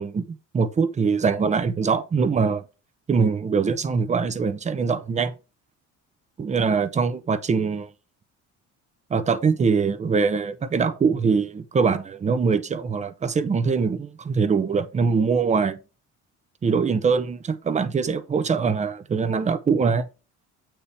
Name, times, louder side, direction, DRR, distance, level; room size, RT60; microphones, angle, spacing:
voice 1, 0.0-2.6 3.1-5.3 6.4-7.9 9.1-15.8 16.6-20.1, right 5 dB, 20° right, 0.7 m, -23 dB
8.4 x 4.4 x 3.4 m
cardioid pair, 145°, 31 cm